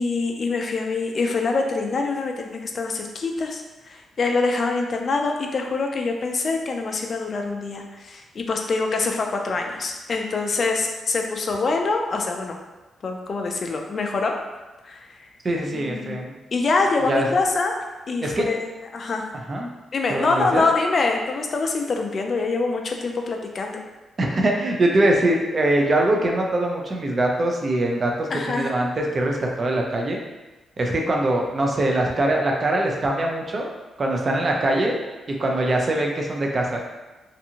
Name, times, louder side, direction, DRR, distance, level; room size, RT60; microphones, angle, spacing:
voice 1, 0.0-12.6 13.0-14.3 14.8-15.1 15.7-16.2 16.5-17.7 18.1-19.3 19.9-23.8 28.3-28.7, left 3 dB, 45° left, 3 dB, 0.3 m, -25 dB
voice 2, 15.4-16.3 17.1-17.3 18.2-18.5 19.5-19.7 20.1-20.7 24.2-30.2 30.8-33.7 34.0-35.0 35.4-36.8, right 1 dB, 35° right, 0 dB, 0.4 m, -22 dB
2.6 x 2.5 x 2.7 m, 1.2 s
cardioid pair, 120°, 0 cm